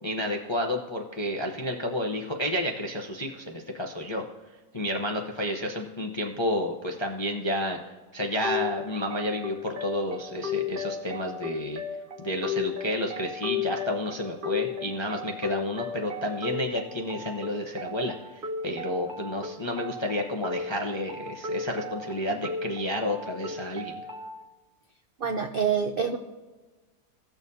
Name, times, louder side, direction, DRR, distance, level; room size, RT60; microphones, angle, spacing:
voice 1, 0.0-4.2 4.7-11.8 12.2-23.9, left 1 dB, 35° left, 1 dB, 0.4 m, -31 dB
sound 1, 8.4-24.4, left 5 dB, 45° right, 0.8 m, -35 dB
voice 2, 25.2-26.2, right 6 dB, 70° right, 5 dB, 0.5 m, -26 dB
17.0 x 7.0 x 2.7 m, 1.2 s
omnidirectional pair, 1.8 m